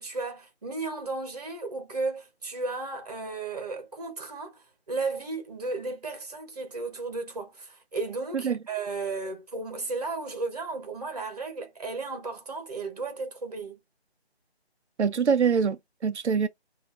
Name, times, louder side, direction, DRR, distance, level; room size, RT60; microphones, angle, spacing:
voice 1, 0.0-13.8, right 3 dB, 35° right, 1.3 m, -34 dB
voice 2, 15.0-16.5, right 6 dB, 85° right, 0.6 m, -24 dB
5.3 x 2.8 x 2.6 m
figure-of-eight pair, 170°, 33 cm